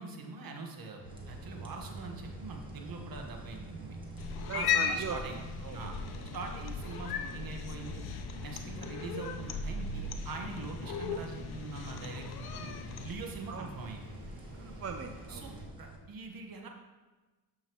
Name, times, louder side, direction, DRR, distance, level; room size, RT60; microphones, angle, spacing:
voice 1, 0.0-4.0 4.5-5.4 5.7-5.9 6.3-8.0 8.4-12.7 13.0-14.0 15.3-16.7, right 3 dB, 60° right, 2 dB, 1.5 m, -43 dB
sound 1, 1.0-16.0, right 1 dB, 10° right, 1.5 m, -49 dB
sound 2, 1.0-15.6, right 2 dB, 80° right, 2.9 m, -48 dB
Cat, 4.2-13.2, left 6 dB, 65° left, 0.8 m, -37 dB
voice 2, 4.5-5.8 13.5-13.7 14.5-15.5, right 5 dB, 40° right, 5 dB, 0.6 m, -40 dB
12.5 x 5.7 x 3.1 m, 1.2 s
cardioid pair, 80°, 40 cm